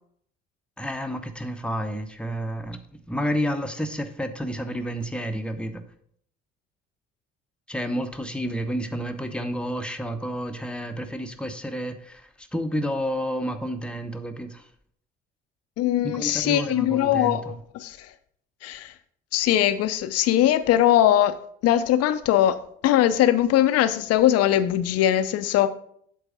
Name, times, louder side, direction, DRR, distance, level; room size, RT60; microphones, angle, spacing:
voice 1, 0.8-2.8 3.1-5.8 7.7-14.7 16.0-17.4, equal, 5° left, 0.8 m, -30 dB
voice 2, 15.8-18.1 18.6-18.9 19.3-21.4 21.6-25.7, left 12 dB, 50° left, 0.6 m, -21 dB
7.7 x 4.0 x 5.0 m
figure-of-eight pair, 50°, 31 cm